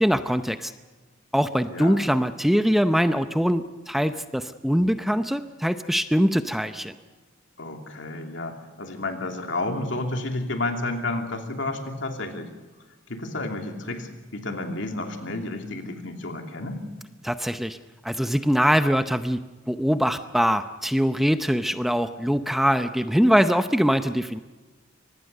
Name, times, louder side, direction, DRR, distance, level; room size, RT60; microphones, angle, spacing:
voice 1, 0.0-0.7 1.3-6.9 17.2-17.8 18.0-19.4 19.7-24.4, equal, ahead, 9 dB, 0.6 m, -22 dB
voice 2, 1.7-2.0 7.6-12.5 13.1-16.9, left 2 dB, 70° left, 4 dB, 2.9 m, -31 dB
24.5 x 19.5 x 6.7 m, 1.3 s
head